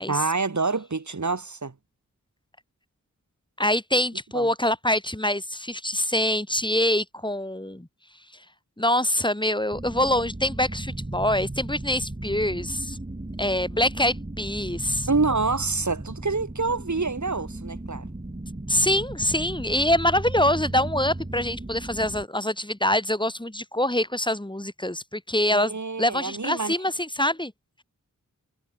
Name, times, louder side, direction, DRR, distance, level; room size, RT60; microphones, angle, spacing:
voice 1, 0.1-1.7 4.3-4.5 15.1-18.0 25.5-26.7, right 4 dB, 60° right, 6.4 m, -27 dB
voice 2, 3.6-7.9 8.8-13.0 13.4-15.1 18.7-27.5, left 1 dB, 15° left, 5.3 m, -25 dB
sound 1, 9.7-22.2, right 1 dB, 25° right, 5.6 m, -36 dB
wide cardioid pair, 70°, 32 cm